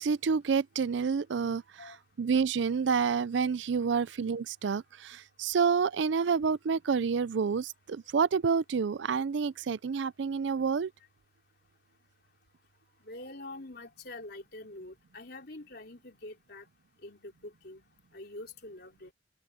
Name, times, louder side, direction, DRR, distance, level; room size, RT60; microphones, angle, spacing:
voice 1, 0.0-10.9, right 5 dB, 70° right, 0.4 m, -29 dB
voice 2, 13.0-16.7 17.0-17.8 18.1-19.1, left 2 dB, 55° left, 3.8 m, -45 dB
open air
head